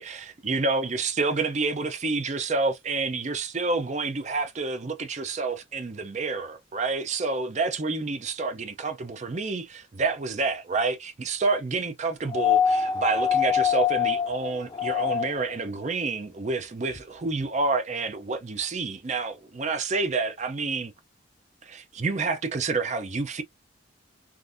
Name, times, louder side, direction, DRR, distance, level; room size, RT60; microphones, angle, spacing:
voice 1, 0.0-20.9 21.6-23.4, right 3 dB, 35° right, 0.5 m, -28 dB
sound 1, 12.3-15.5 17.0-17.1, left 7 dB, 20° left, 0.3 m, -24 dB
3.5 x 2.5 x 2.5 m
head